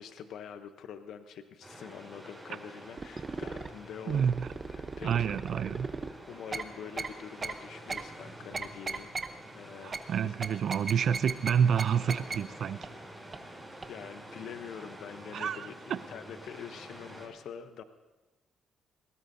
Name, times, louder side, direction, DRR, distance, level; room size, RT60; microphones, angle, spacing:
voice 1, 0.0-4.3 4.7-5.4 6.2-9.1 9.5-10.0 10.2-10.3 13.4-17.8, left 8 dB, 75° left, 9 dB, 0.8 m, -45 dB
sound 1, 1.6-17.3, right 1 dB, 5° right, 5.8 m, -48 dB
sound 2, 3.0-3.7 4.1-6.1 6.5-6.6 7.0-7.1 7.4-7.5 7.9-8.0 8.5-9.3 9.9-10.0 10.4-11.5 11.8-11.9 12.1-12.4 12.8-12.9 13.3-13.4 13.8-13.9, right 4 dB, 30° right, 0.8 m, -36 dB
voice 2, 4.1-4.5 5.0-5.9 9.8-12.8 15.3-16.0, right 7 dB, 60° right, 14 dB, 0.4 m, -28 dB
20.5 x 18.0 x 2.7 m, 1.2 s
cardioid pair, 90°, 0 cm